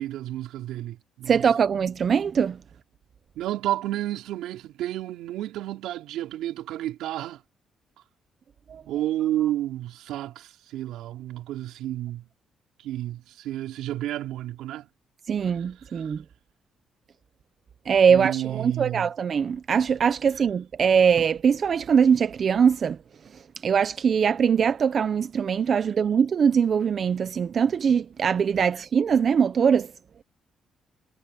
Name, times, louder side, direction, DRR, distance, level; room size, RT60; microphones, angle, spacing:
voice 1, 0.0-1.4 3.4-7.4 8.9-12.3 12.8-14.9 15.5-16.1 18.1-19.1, right 13 dB, 90° right, 4.4 m, -31 dB
voice 2, 1.3-2.6 8.7-8.8 15.3-16.2 17.9-23.0 23.6-29.9, right 7 dB, 50° right, 0.7 m, -22 dB
cardioid pair, 90°, 0 cm